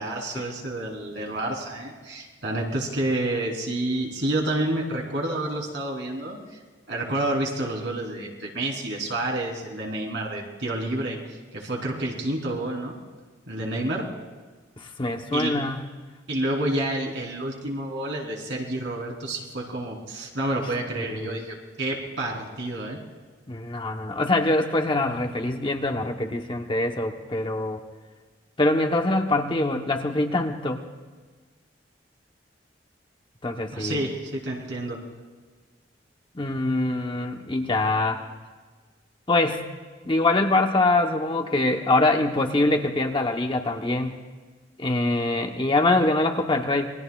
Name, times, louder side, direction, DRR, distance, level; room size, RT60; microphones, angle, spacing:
voice 1, 0.0-6.4 6.9-13.0 13.5-14.1 15.3-15.5 16.3-23.0 33.7-35.0, right 1 dB, 70° right, -1 dB, 3.6 m, -29 dB
voice 2, 14.8-15.8 21.0-21.4 23.5-27.8 28.6-30.8 33.4-34.0 36.3-38.2 39.3-39.6 40.0-44.1 44.8-46.9, left 2 dB, 25° left, 4 dB, 0.9 m, -24 dB
27.5 x 21.5 x 2.4 m, 1.4 s
head